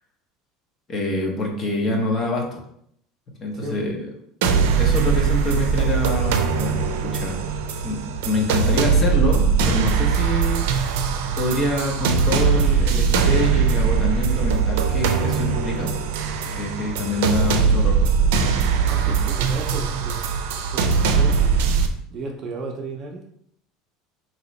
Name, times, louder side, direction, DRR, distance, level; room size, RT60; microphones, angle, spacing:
voice 1, 0.9-2.6 3.4-4.1 4.8-7.4 7.8-10.7 11.3-15.9 16.5-18.0 19.0-19.3, left 1 dB, 30° left, 1 dB, 0.8 m, -26 dB
sound 1, 4.4-21.9, right 5 dB, 90° right, 0.5 m, -21 dB
voice 2, 18.8-20.3 20.7-20.9 21.1-21.5 22.1-23.2, right 2 dB, 40° right, 2 dB, 0.6 m, -34 dB
3.0 x 2.9 x 4.1 m, 0.69 s
cardioid pair, 145°, 0 cm